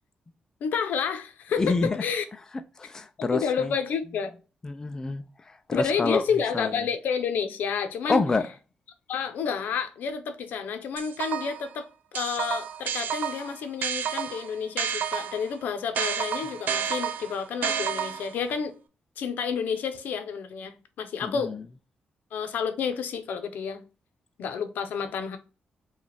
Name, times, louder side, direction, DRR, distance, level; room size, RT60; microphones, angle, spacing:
voice 1, 0.6-2.3 3.2-4.3 5.7-8.2 9.1-11.9 12.1-18.7 19.2-21.5 22.3-23.8 24.4-25.4, left 6 dB, 85° left, 0.7 m, -30 dB
voice 2, 1.6-2.0 2.8-3.7 4.6-6.2 6.5-6.7 8.1-8.5 21.2-21.6, left 3 dB, 20° left, 0.3 m, -27 dB
sound 1, 11.0-11.7 12.1-15.5 15.9-18.4, right 8 dB, 75° right, 0.5 m, -30 dB
4.9 x 2.4 x 3.3 m
wide cardioid pair, 160°, 3 cm